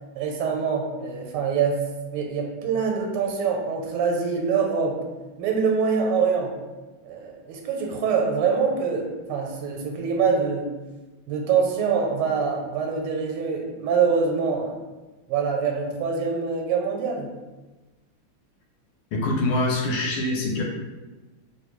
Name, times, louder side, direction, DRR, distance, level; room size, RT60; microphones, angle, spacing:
voice 1, 0.1-1.8 2.1-5.0 5.4-6.5 7.0-10.7 11.3-14.8 15.3-17.3, right 5 dB, 90° right, 1 dB, 1.5 m, -24 dB
voice 2, 19.1-20.6, left 2 dB, 75° left, -1 dB, 1.4 m, -24 dB
3.8 x 2.1 x 3.0 m, 1.2 s
omnidirectional pair, 2.4 m